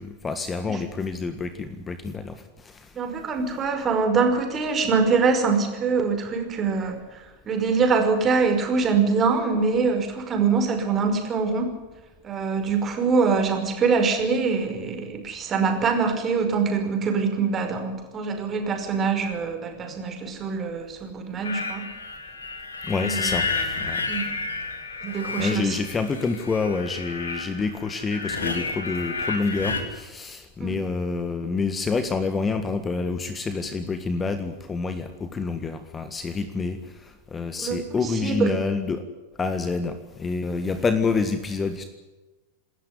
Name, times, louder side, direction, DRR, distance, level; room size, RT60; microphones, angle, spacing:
voice 1, 0.0-2.9 22.8-24.0 25.4-39.0 39.4-41.8, left 4 dB, 15° left, 10 dB, 1.7 m, -28 dB
voice 2, 3.0-11.7 12.2-21.8 23.0-23.4 24.1-24.2 25.0-25.8 30.6-30.8 37.6-38.5, right 5 dB, 25° right, 4 dB, 5.4 m, -24 dB
sound 1, 21.4-29.8, left 3 dB, 70° left, 3.3 m, -31 dB
28.0 x 13.5 x 9.7 m, 1.2 s
figure-of-eight pair, 90°, 0 cm